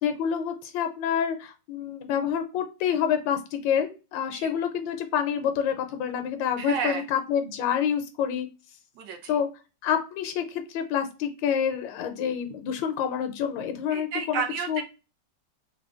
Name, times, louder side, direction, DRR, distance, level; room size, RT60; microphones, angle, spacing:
voice 1, 0.0-8.5 9.3-9.5 9.8-14.8, left 8 dB, 80° left, 7 dB, 1.3 m, -27 dB
voice 2, 6.6-7.0 9.0-9.3 13.9-14.8, right 6 dB, 70° right, 5 dB, 1.2 m, -31 dB
3.7 x 2.2 x 2.4 m, 0.30 s
omnidirectional pair, 2.1 m